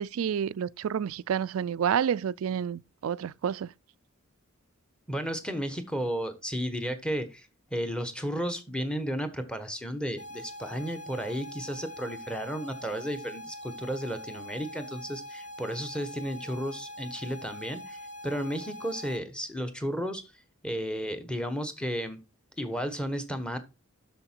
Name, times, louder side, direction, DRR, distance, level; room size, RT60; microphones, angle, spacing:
voice 1, 0.0-3.7, right 8 dB, 75° right, 0.4 m, -29 dB
voice 2, 5.1-18.0 18.2-20.2 20.6-22.2 22.6-23.6, equal, 5° left, 1.2 m, -33 dB
sound 1, 10.2-19.2, left 1 dB, 35° left, 2.5 m, -43 dB
7.8 x 6.6 x 4.5 m
head